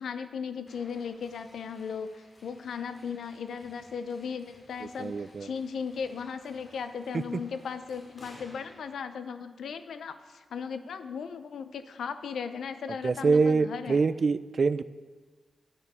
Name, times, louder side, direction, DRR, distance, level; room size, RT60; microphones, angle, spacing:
voice 1, 0.0-14.0, left 6 dB, 90° left, 11 dB, 0.5 m, -37 dB
sound 1, 0.7-8.9, left 1 dB, 50° left, 2.3 m, -57 dB
voice 2, 5.0-5.5 7.1-7.2 13.0-14.8, right 4 dB, 55° right, 15 dB, 0.3 m, -25 dB
10.5 x 6.7 x 4.8 m, 1.4 s
cardioid pair, 75°, 0 cm